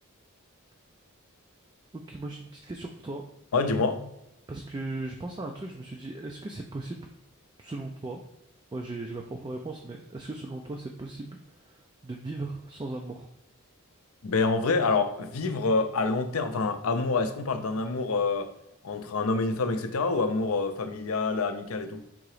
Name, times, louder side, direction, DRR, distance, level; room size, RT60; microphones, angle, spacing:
voice 1, 1.9-3.2 4.5-7.1 7.6-8.2 8.7-13.3, right 2 dB, 20° right, 0.3 m, -37 dB
voice 2, 3.5-4.0 14.2-18.5 18.8-22.0, left 3 dB, 70° left, 0.5 m, -27 dB
3.7 x 2.9 x 4.8 m
head